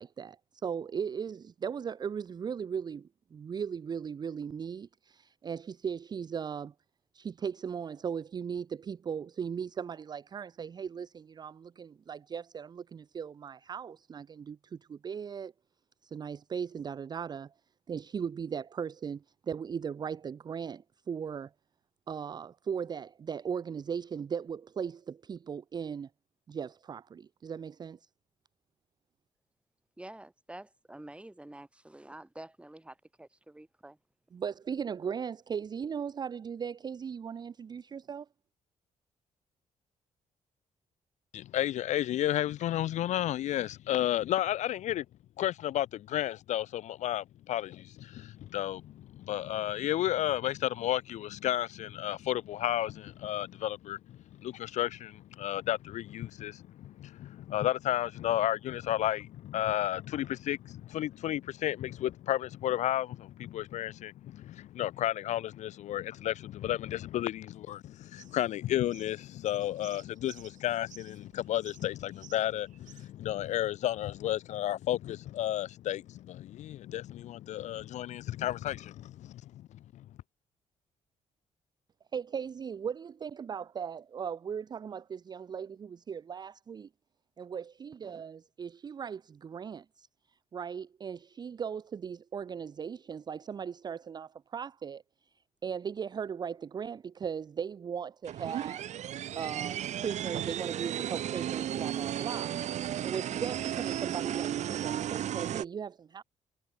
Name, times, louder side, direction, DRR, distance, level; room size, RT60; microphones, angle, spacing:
voice 1, 0.0-6.7 7.1-15.5 16.0-17.5 17.9-21.5 22.1-26.1 26.5-28.1 34.3-38.3 82.1-86.9 87.4-95.0 95.6-98.8 99.4-102.6 103.0-106.2, right 7 dB, 35° right, 0.5 m, -38 dB
voice 2, 30.0-34.0, right 1 dB, 10° right, 6.1 m, -48 dB
voice 3, 41.3-45.0 45.4-79.4 79.9-80.0, left 13 dB, 65° left, 0.4 m, -32 dB
sound 1, 68.1-73.1, right 12 dB, 75° right, 8.0 m, -56 dB
sound 2, 98.2-105.6, right 11 dB, 60° right, 1.3 m, -34 dB
cardioid pair, 120°, 13 cm